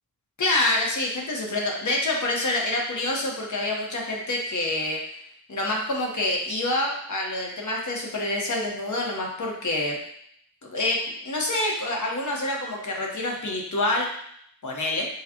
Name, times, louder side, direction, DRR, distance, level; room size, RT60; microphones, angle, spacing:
voice 1, 0.4-5.0 5.5-10.0 10.7-14.1 14.6-15.1, left 2 dB, 55° left, -1 dB, 1.1 m, -27 dB
6.5 x 2.4 x 2.9 m, 0.68 s
wide cardioid pair, 80°, 36 cm